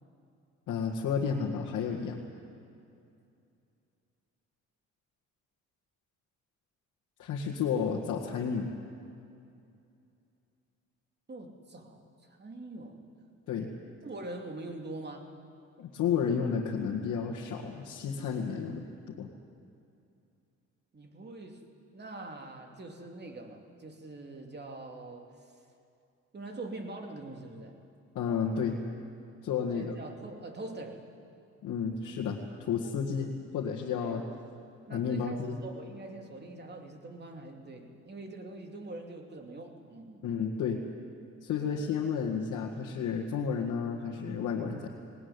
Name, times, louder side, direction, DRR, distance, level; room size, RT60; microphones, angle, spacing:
voice 1, 0.7-2.2 7.2-8.7 13.5-13.7 15.8-19.3 28.2-28.8 29.4-29.9 31.6-34.2 34.9-35.6 40.2-40.8 41.4-44.9, left 6 dB, 80° left, -2 dB, 1.9 m, -32 dB
voice 2, 11.3-13.0 14.0-15.3 20.9-21.6 21.9-25.5 26.3-27.8 29.7-31.1 34.0-34.4 34.9-40.4 41.6-41.9, right 2 dB, 35° right, 3 dB, 2.9 m, -44 dB
19.0 x 19.0 x 9.7 m, 2.6 s
cardioid pair, 90°, 30 cm